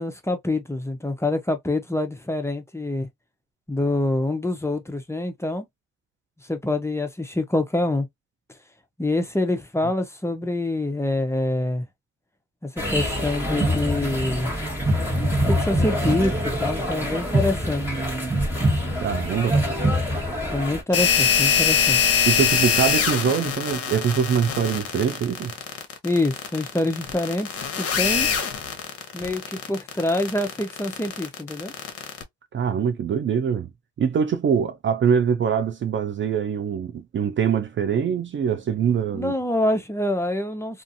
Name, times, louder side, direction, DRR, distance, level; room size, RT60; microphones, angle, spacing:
voice 1, 0.0-3.1 3.7-5.7 6.5-8.1 9.0-11.9 12.6-14.5 15.5-17.8 19.5-19.6 20.5-22.0 26.0-27.5 27.8-28.3 29.1-31.7 39.1-40.8, left 2 dB, 10° left, 0.6 m, -26 dB
sound 1, 12.8-20.8, equal, 5° right, 1.3 m, -24 dB
voice 2, 19.0-19.6 22.3-25.5 32.5-33.7 34.0-39.3, right 7 dB, 40° right, 0.4 m, -23 dB
sound 2, 20.9-32.2, left 7 dB, 50° left, 0.8 m, -23 dB
2.5 x 2.5 x 2.6 m
cardioid pair, 90°, 30 cm